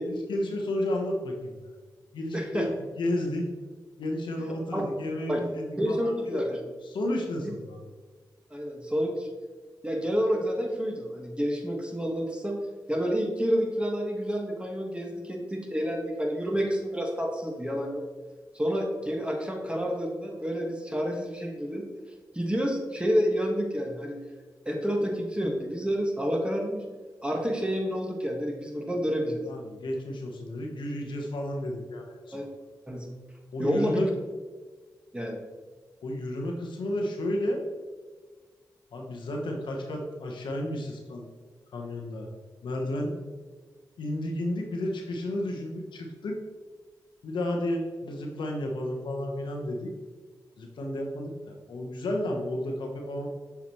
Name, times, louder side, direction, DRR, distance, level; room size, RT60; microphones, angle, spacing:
voice 1, 0.0-1.6 2.1-2.7 3.0-3.5 4.0-6.4 6.8-7.8 29.5-32.3 33.5-34.1 36.0-37.6 38.9-41.3 41.7-42.3 42.6-43.1 44.0-46.4 47.2-49.9 50.6-53.3, left 1 dB, 85° left, 1 dB, 0.9 m, -32 dB
voice 2, 2.3-2.7 4.7-4.8 5.3-5.4 5.8-6.6 8.5-9.3 9.8-12.6 12.9-18.0 18.5-21.8 22.3-24.2 24.6-26.8 27.2-29.4 32.3-32.4 32.9-33.1 33.6-34.0 35.1-35.4, equal, 15° right, 1 dB, 1.4 m, -29 dB
6.8 x 4.7 x 3.0 m, 1.4 s
cardioid pair, 45°, 8 cm